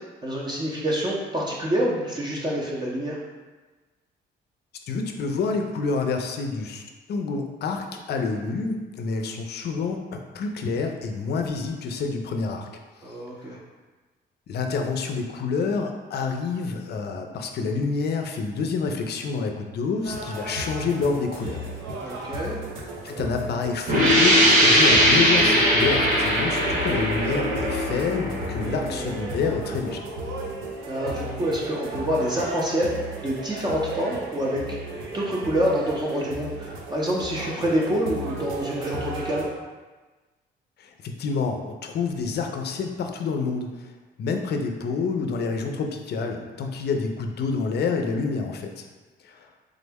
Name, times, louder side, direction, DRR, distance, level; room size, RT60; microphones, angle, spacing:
voice 1, 0.2-3.2 13.0-13.6 22.0-22.6 28.5-29.1 30.9-32.9 33.2-34.8 35.1-39.4, equal, 20° right, -5 dB, 0.6 m, -27 dB
voice 2, 4.9-12.7 13.4-13.6 14.5-21.6 23.0-30.0 40.8-43.9 44.2-48.9 49.2-49.5, left 4 dB, 55° left, 4 dB, 0.5 m, -28 dB
sound 1, 20.0-39.5, right 1 dB, 90° right, 0.6 m, -34 dB
sound 2, 23.9-29.3, equal, 45° right, 0.9 m, -20 dB
3.6 x 2.1 x 3.4 m, 1.3 s
cardioid pair, 90°, 20 cm